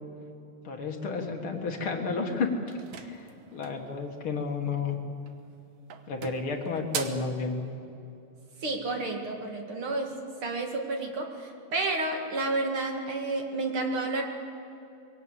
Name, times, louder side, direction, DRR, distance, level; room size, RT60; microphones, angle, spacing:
voice 1, 0.6-2.6 3.0-5.0 6.1-7.6, left 4 dB, 50° left, 3 dB, 2.3 m, -31 dB
sound 1, 2.7-3.9 5.2-5.6 5.9-7.3, right 8 dB, 65° right, 1.9 m, -39 dB
voice 2, 8.6-10.1 10.4-14.2, right 2 dB, 45° right, 2 dB, 2.7 m, -30 dB
22.5 x 17.5 x 8.3 m, 2.8 s
omnidirectional pair, 3.6 m